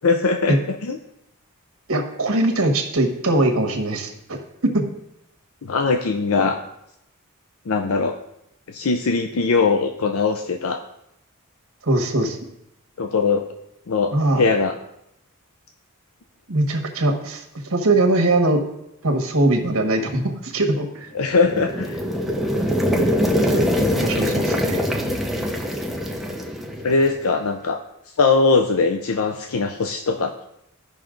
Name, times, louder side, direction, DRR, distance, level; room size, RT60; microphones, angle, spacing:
voice 1, 0.0-1.0 5.6-6.6 7.7-8.2 8.7-10.8 13.0-13.5 13.9-14.7 21.1-22.0 26.8-27.8 28.2-30.5, left 4 dB, 70° left, 6 dB, 0.6 m, -21 dB
voice 2, 1.9-4.4 4.7-4.8 11.8-12.4 14.1-14.4 16.5-17.4 17.7-18.6 19.0-21.1 23.4-24.8, right 2 dB, 65° right, 4 dB, 1.5 m, -21 dB
sound 1, 21.3-27.3, equal, ahead, 0.9 m, -23 dB
12.5 x 5.7 x 3.8 m, 0.82 s
head